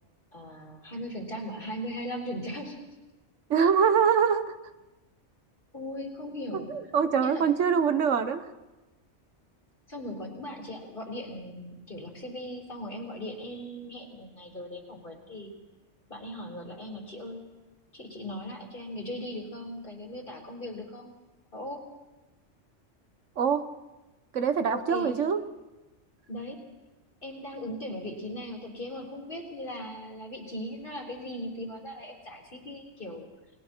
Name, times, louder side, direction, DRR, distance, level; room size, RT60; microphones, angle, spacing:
voice 1, 0.3-2.9 5.7-7.5 9.9-15.5 16.1-17.4 17.9-21.1 21.5-21.9 24.7-25.2 26.3-26.6 27.2-33.3, left 1 dB, 45° left, 0 dB, 3.7 m, -38 dB
voice 2, 3.5-4.6 6.5-8.5 23.4-23.6 24.3-25.4, right 7 dB, 85° right, 11 dB, 1.4 m, -24 dB
29.5 x 19.5 x 4.5 m, 1.1 s
omnidirectional pair, 1.2 m